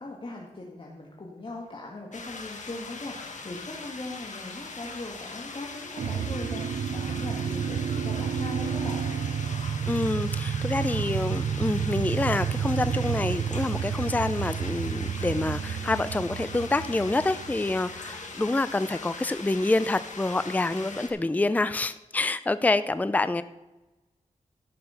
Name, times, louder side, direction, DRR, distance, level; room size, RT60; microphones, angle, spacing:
voice 1, 0.0-9.1, left 2 dB, 40° left, -2 dB, 1.8 m, -39 dB
sound 1, 2.1-21.1, left 4 dB, 70° left, 1.5 m, -41 dB
sound 2, 6.0-18.2, right 7 dB, 90° right, 0.5 m, -30 dB
voice 2, 9.9-23.4, left 2 dB, 10° left, 14 dB, 0.4 m, -27 dB
13.5 x 6.7 x 5.7 m, 1.1 s
wide cardioid pair, 75°, 13 cm